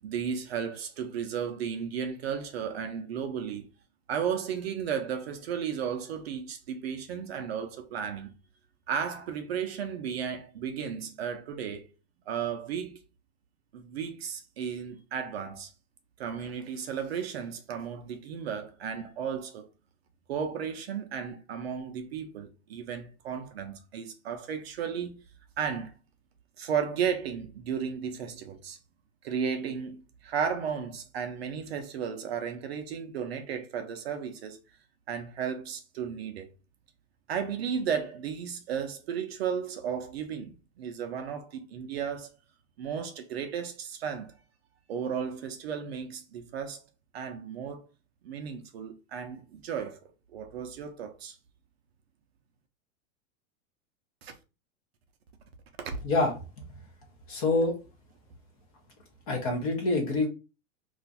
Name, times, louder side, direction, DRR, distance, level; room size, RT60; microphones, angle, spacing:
voice 1, 0.0-3.7 4.1-8.3 8.9-11.9 12.3-13.0 13.7-15.7 16.2-19.7 20.3-25.2 25.6-25.9 26.6-28.8 29.2-34.6 35.1-36.5 37.3-42.3 42.8-44.3 44.9-46.8 47.1-47.9 48.2-50.0 50.3-51.4 54.2-54.3, right 7 dB, 50° right, 0.5 m, -34 dB
voice 2, 57.3-57.7 59.3-60.3, left 2 dB, 25° left, 0.6 m, -26 dB
2.5 x 2.2 x 3.8 m
supercardioid pair, 170°, 42 cm